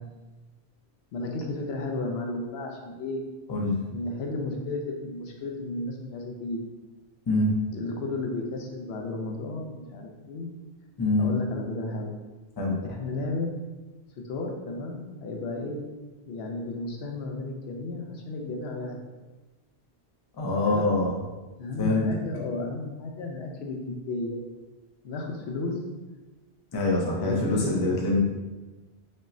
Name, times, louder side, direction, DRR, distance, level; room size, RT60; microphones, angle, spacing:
voice 1, 1.1-3.2 3.9-6.7 7.7-10.5 11.2-12.1 12.8-13.5 14.2-15.8 16.3-19.0 20.7-20.9 21.6-24.4 25.0-25.8 27.2-28.2, left 2 dB, 75° left, 1 dB, 0.8 m, -33 dB
voice 2, 3.5-3.8 7.3-7.5 11.0-11.3 12.6-12.7 20.4-21.1 21.8-22.1 26.7-28.2, left 2 dB, 30° left, -2 dB, 0.5 m, -24 dB
5.3 x 2.0 x 2.6 m, 1.2 s
omnidirectional pair, 1.1 m